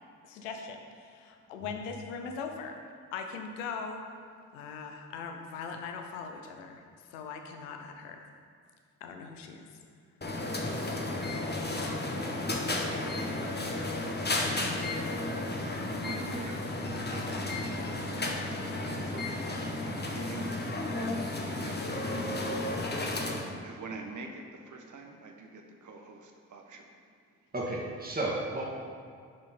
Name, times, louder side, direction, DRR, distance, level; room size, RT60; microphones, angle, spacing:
voice 1, 0.2-2.8 3.1-4.0 4.5-6.8 7.1-8.2 9.0-9.7 14.4-15.1, left 5 dB, 90° left, 4 dB, 0.7 m, -40 dB
sound 1, 10.2-23.5, left 2 dB, 25° left, 1.3 m, -33 dB
voice 2, 15.3-17.4 17.7-22.7 23.0-27.0, right 3 dB, 55° right, 3 dB, 1.3 m, -46 dB
voice 3, 16.5-16.9 27.5-28.7, right 2 dB, 25° right, -3 dB, 2.0 m, -34 dB
10.5 x 5.3 x 4.3 m, 2.1 s
hypercardioid pair, 40°, 37 cm